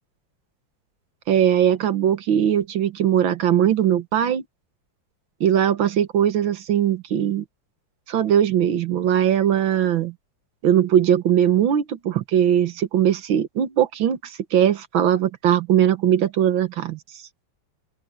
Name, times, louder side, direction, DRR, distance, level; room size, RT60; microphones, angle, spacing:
voice 1, 1.3-4.4 5.4-7.4 8.1-10.1 10.6-17.0, right 10 dB, 80° right, 1.9 m, -20 dB
open air
omnidirectional pair, 2.1 m